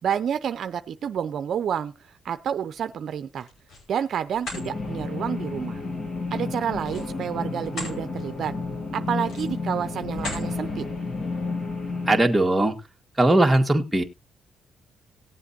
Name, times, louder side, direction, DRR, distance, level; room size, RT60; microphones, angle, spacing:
voice 1, 0.0-3.5 3.9-5.8 6.3-8.5 8.9-10.8, right 8 dB, 60° right, 9 dB, 0.7 m, -29 dB
sound 1, 3.3-3.9 4.3-4.7 6.8-8.0 8.4-8.6 9.2-9.6 10.1-10.5, left 2 dB, 75° left, 5.2 m, -37 dB
sound 2, 4.5-12.2, left 3 dB, 50° left, 4.4 m, -31 dB
voice 2, 12.1-12.7 13.2-14.0, right 1 dB, 10° right, 2 dB, 2.0 m, -19 dB
18.5 x 7.7 x 2.7 m, 0.25 s
cardioid pair, 90°, 0 cm